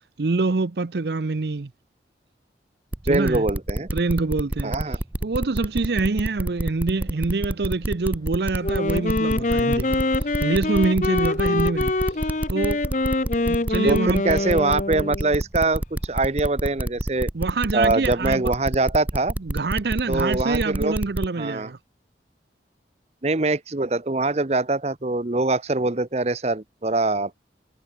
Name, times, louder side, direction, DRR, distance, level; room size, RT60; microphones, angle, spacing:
voice 1, 0.2-1.7 3.1-3.5 3.9-4.7 5.2-10.0 10.4-11.9 12.5-12.8 13.5-14.2 17.3-18.5 19.4-21.8, right 3 dB, 70° right, 0.7 m, -25 dB
sound 1, 2.9-21.3, right 1 dB, 10° right, 0.3 m, -27 dB
voice 2, 3.1-3.9 4.6-5.0 11.5-11.7 13.8-17.3 17.7-19.3 20.1-20.9 21.4-21.7 23.2-27.3, right 2 dB, 35° right, 0.9 m, -23 dB
sound 2, 3.7-12.8, equal, 25° left, 7.4 m, -55 dB
Wind instrument woodwind instrument, 8.6-15.4, left 2 dB, 45° left, 1.0 m, -24 dB
head